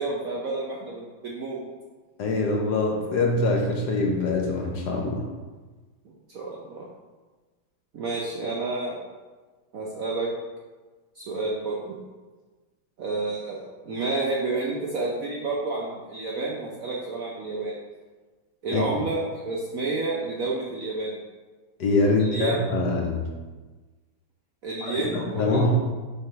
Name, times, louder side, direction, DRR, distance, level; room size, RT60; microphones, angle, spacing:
voice 1, 0.0-1.6 6.0-6.9 7.9-9.0 9.7-10.3 11.2-12.0 13.0-17.7 18.6-21.2 22.2-22.7 24.6-25.7, right 3 dB, 60° right, -3 dB, 0.9 m, -30 dB
voice 2, 2.2-5.2 18.7-18.8 21.8-23.2 24.8-25.7, left 2 dB, 65° left, 0 dB, 1.2 m, -24 dB
6.8 x 3.5 x 4.6 m, 1.3 s
omnidirectional pair, 2.2 m